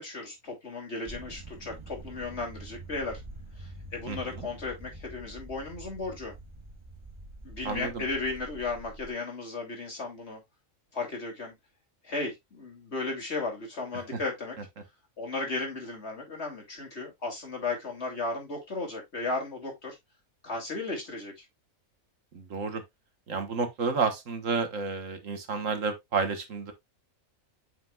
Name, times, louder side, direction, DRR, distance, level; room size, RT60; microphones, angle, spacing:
voice 1, 0.0-3.2 3.6-6.3 7.4-10.4 10.9-11.5 12.0-14.6 15.2-20.0 20.4-21.4, left 3 dB, 50° left, 3.0 m, -35 dB
sound 1, 1.1-9.1, right 2 dB, 20° right, 1.6 m, -46 dB
voice 2, 4.1-4.5 7.6-8.0 14.1-14.2 22.3-22.8 23.3-26.7, right 4 dB, 65° right, 1.7 m, -31 dB
8.8 x 5.7 x 2.3 m
omnidirectional pair, 1.4 m